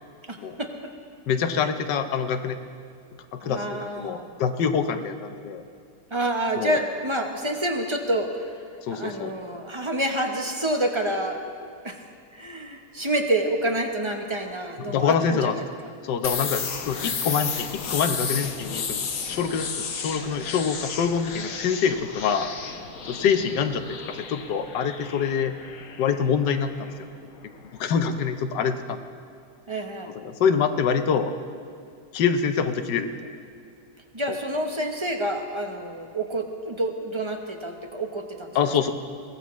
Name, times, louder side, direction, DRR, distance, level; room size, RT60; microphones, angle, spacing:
voice 1, 0.3-0.7 3.4-4.3 6.1-8.5 8.9-11.4 11.8-12.0 12.3-15.7 29.7-30.1 34.1-38.6, right 1 dB, 25° right, 3 dB, 0.6 m, -28 dB
voice 2, 1.3-2.6 3.3-5.6 6.6-6.8 8.8-9.3 14.8-15.6 16.0-22.5 23.1-25.5 26.0-26.9 27.8-29.0 30.1-31.3 32.1-33.3 34.3-34.4 38.5-38.9, left 6 dB, 80° left, 8 dB, 1.4 m, -25 dB
sound 1, 16.2-27.9, left 6 dB, 55° left, 1.2 m, -33 dB
22.5 x 16.5 x 3.1 m, 2.2 s
omnidirectional pair, 1.9 m